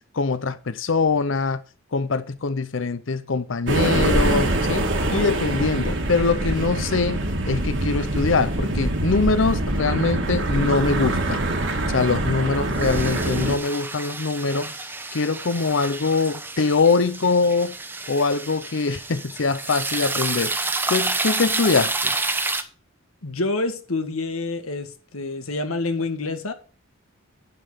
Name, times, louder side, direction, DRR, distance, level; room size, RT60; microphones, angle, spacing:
voice 1, 0.1-1.6 1.9-11.4 11.9-14.8 15.1-17.7 18.1-20.6 20.9-22.2, left 4 dB, 60° left, 0.6 m, -23 dB
sound 1, 3.7-13.6, right 1 dB, 60° right, 2.0 m, -24 dB
sound 2, 12.8-22.6, right 3 dB, 10° right, 0.9 m, -29 dB
voice 2, 23.2-26.5, left 3 dB, 90° left, 1.8 m, -27 dB
10.5 x 5.7 x 6.8 m
head